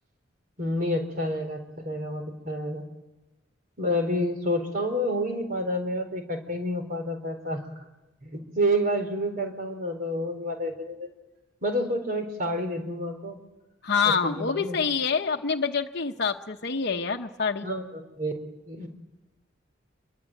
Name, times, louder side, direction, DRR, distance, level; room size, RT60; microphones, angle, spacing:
voice 1, 0.6-2.8 3.8-7.6 8.2-11.1 11.6-13.4 14.0-14.8 17.6-18.3 18.6-18.9, equal, 50° right, 6 dB, 4.3 m, -29 dB
voice 2, 13.8-17.7, left 5 dB, 60° left, 3 dB, 0.9 m, -26 dB
27.0 x 23.0 x 9.1 m, 1.1 s
head